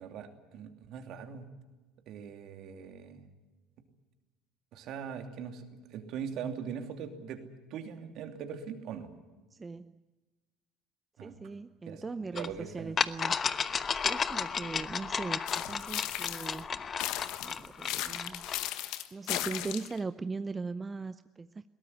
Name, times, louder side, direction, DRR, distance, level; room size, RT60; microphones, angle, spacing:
voice 1, 0.0-1.5 2.1-3.2 4.7-7.4 7.7-9.1 11.2-11.3 11.8-12.0 12.3-12.9, right 7 dB, 60° right, 6 dB, 2.8 m, -41 dB
voice 2, 9.5-10.0 11.2-13.4 14.0-16.7 17.4-18.4 19.1-21.7, right 4 dB, 25° right, 13 dB, 0.6 m, -39 dB
sound 1, 12.4-12.5 13.0-18.7, left 6 dB, 35° left, 1.0 m, -33 dB
sound 2, 15.5-16.6 17.0-20.0, left 14 dB, 65° left, 1.2 m, -36 dB
21.5 x 18.0 x 9.7 m, 1.2 s
hypercardioid pair, 70°, 0 cm